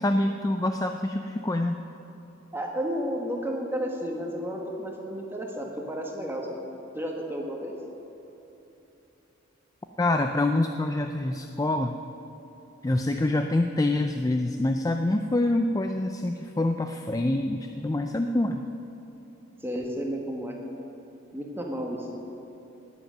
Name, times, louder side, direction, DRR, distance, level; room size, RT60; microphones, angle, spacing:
voice 1, 0.0-1.8 10.0-12.0 12.8-18.6, left 2 dB, 15° left, 6 dB, 0.4 m, -26 dB
voice 2, 2.5-6.5 6.9-7.7 19.6-20.5 21.3-22.1, equal, 10° right, 0 dB, 1.6 m, -32 dB
19.5 x 8.0 x 6.5 m, 3.0 s
head